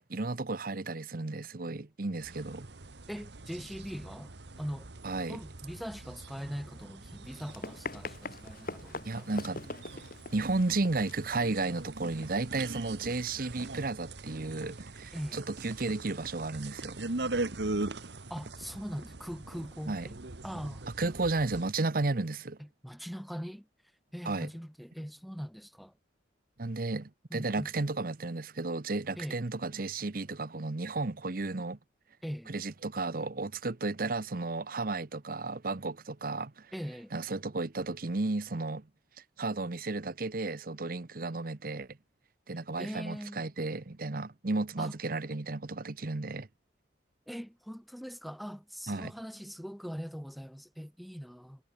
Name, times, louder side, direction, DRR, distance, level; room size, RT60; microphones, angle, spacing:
voice 1, 0.1-2.7 5.0-5.4 9.0-9.7 10.3-17.1 19.9-20.1 21.0-22.6 24.2-24.5 26.6-31.8 32.5-36.7 37.1-38.9 39.4-42.0 42.5-46.5 48.9-49.1, right 3 dB, 50° right, 0.9 m, -33 dB
sound 1, 2.2-21.7, right 2 dB, 70° right, 1.4 m, -41 dB
voice 2, 3.1-4.3 4.6-4.9 5.3-9.6 15.1-15.5 18.3-20.2 20.4-20.8 22.6-23.7 24.1-25.9 27.3-27.7 29.2-29.4 32.2-32.5 36.7-37.1 42.8-43.5 44.8-44.9 47.3-51.6, equal, ahead, 7.0 m, -41 dB
Run, 7.3-12.8, left 2 dB, 50° left, 4.5 m, -44 dB
head